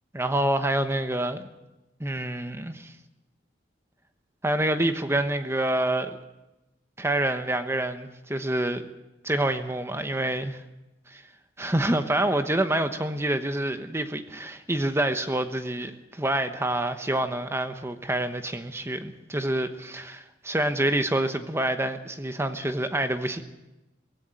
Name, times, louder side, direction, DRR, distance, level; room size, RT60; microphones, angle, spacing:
voice 1, 0.1-1.5 2.0-2.9 4.4-6.2 7.0-8.8 9.2-10.6 11.1-11.2 11.6-23.4, right 1 dB, 15° right, 8 dB, 1.1 m, -27 dB
18.0 x 16.0 x 9.1 m, 0.96 s
head